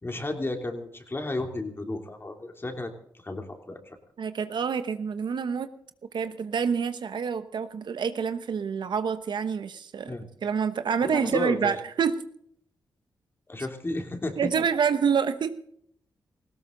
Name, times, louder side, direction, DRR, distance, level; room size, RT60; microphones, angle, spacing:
voice 1, 0.0-2.9 3.2-4.0 10.1-10.3 11.0-11.8 13.5-14.6, left 2 dB, 30° left, 4 dB, 3.1 m, -33 dB
voice 2, 4.2-5.7 6.1-10.1 10.4-12.2 14.4-15.5, right 6 dB, 70° right, 11 dB, 1.0 m, -27 dB
18.5 x 16.0 x 3.9 m, 0.68 s
cardioid pair, 65°, 8 cm